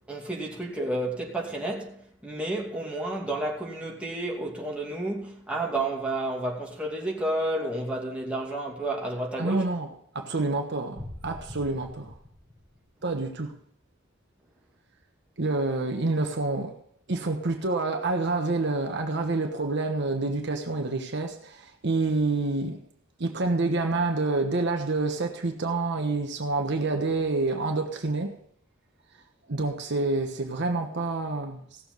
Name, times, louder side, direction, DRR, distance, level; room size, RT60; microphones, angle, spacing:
voice 1, 0.1-9.6, right 1 dB, 5° right, 2.6 m, -31 dB
voice 2, 9.4-9.9 10.1-12.1 13.0-13.5 15.4-16.7 17.1-22.8 23.2-28.3 29.5-31.8, right 3 dB, 60° right, 1.2 m, -28 dB
sound 1, 11.0-13.1, left 1 dB, 20° left, 5.4 m, -43 dB
17.0 x 7.1 x 5.4 m
head